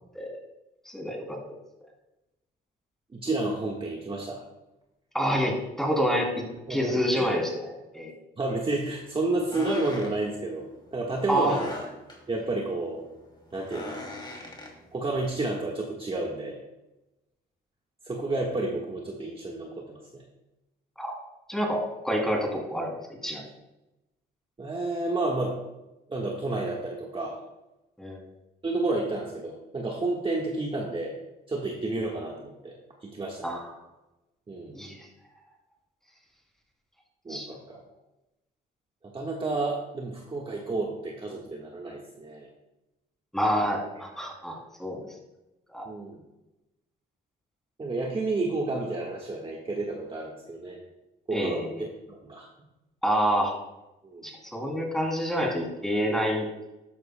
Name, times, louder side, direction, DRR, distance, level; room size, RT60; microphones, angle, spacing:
voice 1, 0.8-1.4 5.1-6.4 6.7-8.1 11.3-11.6 21.0-21.1 21.5-23.4 28.0-28.2 33.4-33.7 34.7-35.0 37.3-37.5 43.3-45.0 45.7-45.9 51.3-51.8 53.0-53.5 54.2-56.5, equal, ahead, -1 dB, 2.9 m, -28 dB
voice 2, 3.1-4.4 6.7-7.3 8.4-11.7 12.3-13.0 13.5-14.0 14.9-16.6 18.0-20.2 24.6-25.6 26.1-27.4 28.6-31.2 31.5-33.5 34.5-34.8 37.2-37.8 39.0-42.5 45.8-46.2 47.8-50.8 51.3-52.5 54.0-54.3, right 2 dB, 25° right, -2 dB, 1.4 m, -31 dB
sound 1, 8.8-15.3, left 2 dB, 20° left, 2.6 m, -42 dB
12.5 x 9.2 x 2.2 m, 0.96 s
cardioid pair, 90°, 20 cm